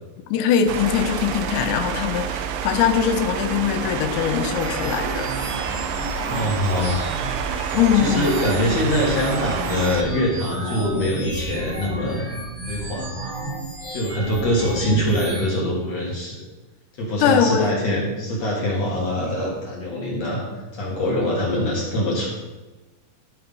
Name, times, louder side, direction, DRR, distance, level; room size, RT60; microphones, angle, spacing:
voice 1, 0.3-5.3 7.7-8.3 17.2-17.7, left 8 dB, 80° left, 7 dB, 2.9 m, -21 dB
sound 1, 0.7-10.0, right 8 dB, 85° right, 3.1 m, -28 dB
sound 2, 4.6-15.4, right 1 dB, 20° right, 1.4 m, -32 dB
voice 2, 6.2-7.0 7.9-12.3 12.7-13.3 13.9-16.5 17.0-20.5 20.7-22.3, left 1 dB, 50° left, -4 dB, 2.2 m, -23 dB
13.0 x 4.5 x 5.4 m, 1.2 s
omnidirectional pair, 5.3 m